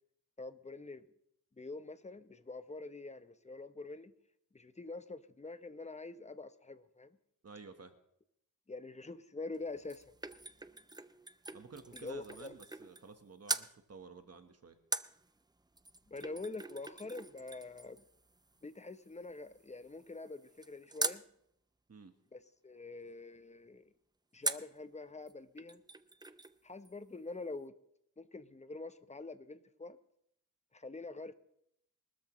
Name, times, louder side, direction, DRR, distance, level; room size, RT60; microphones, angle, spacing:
voice 1, 0.4-1.0 1.6-4.1 4.5-7.2 8.7-10.0 11.9-12.5 16.1-18.0 18.6-21.2 22.3-23.9 24.3-25.8 26.6-27.7 28.2-30.0 30.7-31.3, left 3 dB, 20° left, 11 dB, 0.8 m, -45 dB
voice 2, 7.4-8.0 11.5-14.8 21.9-22.1, right 4 dB, 45° right, 7 dB, 1.2 m, -52 dB
sound 1, 9.5-13.2 13.5-13.7 14.9-21.3 24.4-24.8 25.3-25.4 25.6-26.6 26.8-26.9, right 2 dB, 10° right, 0.5 m, -42 dB
23.5 x 13.0 x 3.1 m, 0.74 s
wide cardioid pair, 110°, 34 cm